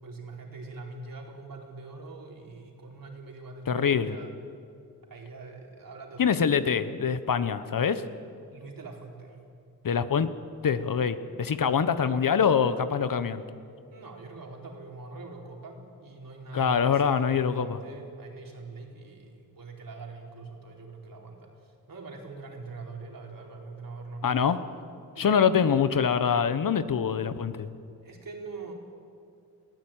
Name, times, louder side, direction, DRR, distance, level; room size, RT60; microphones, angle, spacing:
voice 1, 0.0-4.3 5.0-6.5 8.5-9.4 13.9-24.6 25.2-25.4 28.0-28.7, right 3 dB, 55° right, 0 dB, 4.4 m, -43 dB
voice 2, 3.7-4.2 6.2-8.0 9.8-10.3 10.6-13.4 16.5-17.7 24.2-24.6 25.2-27.7, left 7 dB, 55° left, 12 dB, 1.1 m, -24 dB
22.0 x 15.0 x 9.0 m, 2.4 s
cardioid pair, 60°, 39 cm